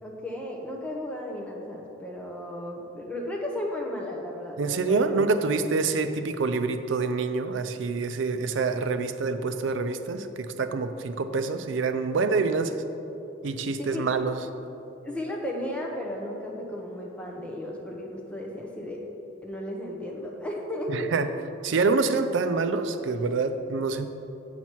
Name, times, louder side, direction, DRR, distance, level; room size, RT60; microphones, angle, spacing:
voice 1, 0.0-5.0 13.8-14.2 15.0-19.0 19.4-21.1, left 1 dB, 5° left, -2 dB, 0.8 m, -34 dB
voice 2, 4.6-12.8 13.4-14.4 20.9-21.3 21.6-24.1, right 4 dB, 75° right, 9 dB, 0.4 m, -26 dB
8.1 x 5.9 x 4.5 m, 2.9 s
head